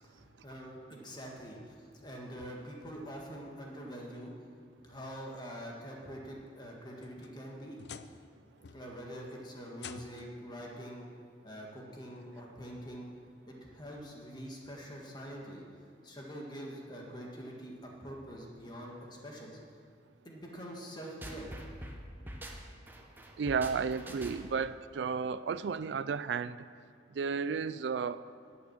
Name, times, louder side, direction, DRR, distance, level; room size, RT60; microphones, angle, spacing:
voice 1, 0.0-4.3 4.8-7.8 8.7-11.1 11.4-13.1 13.5-15.6 16.0-19.6 20.2-21.8, equal, 25° left, -1 dB, 1.8 m, -45 dB
sound 1, 6.7-8.3 8.6-9.1 9.7-10.4 11.6-11.7 12.3-12.4 14.0-14.1, left 7 dB, 70° left, 0.5 m, -50 dB
sound 2, 21.2-24.7, right 1 dB, 10° right, 1.0 m, -45 dB
voice 2, 23.4-26.6 27.1-28.2, right 5 dB, 75° right, 15 dB, 0.4 m, -33 dB
10.5 x 8.7 x 7.4 m, 2.1 s
head